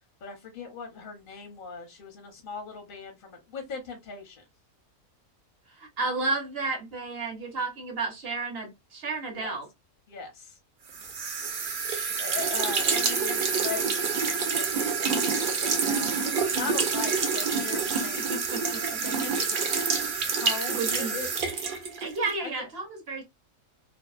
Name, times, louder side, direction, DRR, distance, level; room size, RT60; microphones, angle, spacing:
voice 1, 0.2-4.4 9.3-9.6 10.1-10.6 11.9-18.4 18.9-21.3 22.4-22.7, left 5 dB, 50° left, 0.6 m, -40 dB
voice 2, 5.7-9.7 18.1-19.0 20.7-21.2 22.0-23.2, right 3 dB, 50° right, 0.9 m, -32 dB
sound 1, 10.9-22.4, right 5 dB, 65° right, 0.5 m, -27 dB
2.7 x 2.2 x 2.3 m
omnidirectional pair, 1.6 m